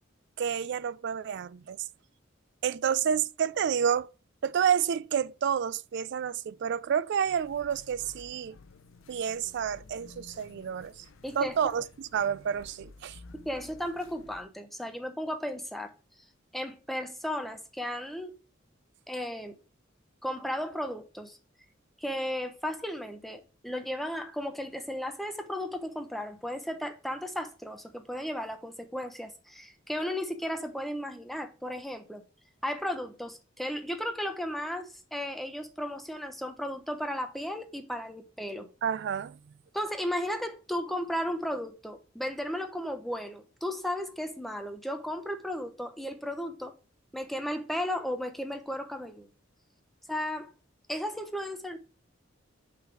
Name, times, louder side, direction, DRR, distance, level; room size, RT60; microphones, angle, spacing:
voice 1, 0.4-1.8 2.6-4.1 4.4-8.6 9.1-10.9 11.4-11.8 12.1-13.2 38.8-39.4, right 8 dB, 60° right, 0.3 m, -29 dB
sound 1, 7.2-14.4, left 3 dB, 85° left, 0.7 m, -53 dB
voice 2, 11.2-11.6 13.4-15.9 16.5-18.4 19.1-19.6 20.2-21.4 22.0-32.2 32.6-38.7 39.7-46.7 47.1-49.3 50.1-50.5 50.9-51.8, equal, ahead, 0.9 m, -35 dB
5.5 x 4.0 x 5.9 m
head